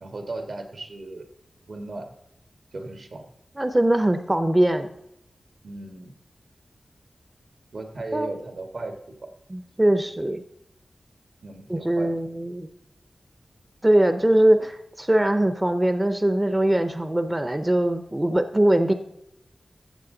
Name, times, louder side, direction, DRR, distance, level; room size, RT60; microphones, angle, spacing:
voice 1, 0.0-1.3 1.7-2.1 2.7-3.2 5.6-6.1 7.7-8.9 9.2-9.3 11.4-12.1, right 2 dB, 70° right, 5 dB, 1.6 m, -36 dB
voice 2, 3.6-4.9 8.1-8.3 9.5-10.4 11.7-12.7 13.8-18.9, right 1 dB, 15° right, 9 dB, 0.6 m, -21 dB
14.5 x 7.5 x 3.9 m, 0.82 s
wide cardioid pair, 110°, 0 cm